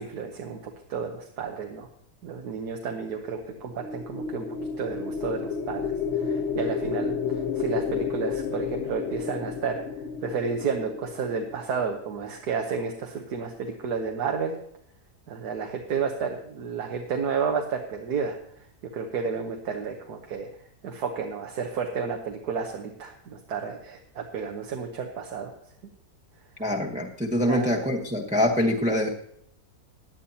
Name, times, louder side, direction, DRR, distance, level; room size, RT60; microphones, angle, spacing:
voice 1, 0.0-1.9 2.2-4.4 4.8-5.9 6.2-9.8 10.2-14.6 15.3-18.3 18.9-20.5 20.8-25.5 27.4-27.8, right 5 dB, 90° right, 2 dB, 1.6 m, -31 dB
sound 1, 3.6-12.0, left 6 dB, 50° left, 1.0 m, -31 dB
voice 2, 26.6-29.1, left 1 dB, 5° right, -1 dB, 0.9 m, -24 dB
17.5 x 10.0 x 2.8 m, 0.67 s
omnidirectional pair, 1.6 m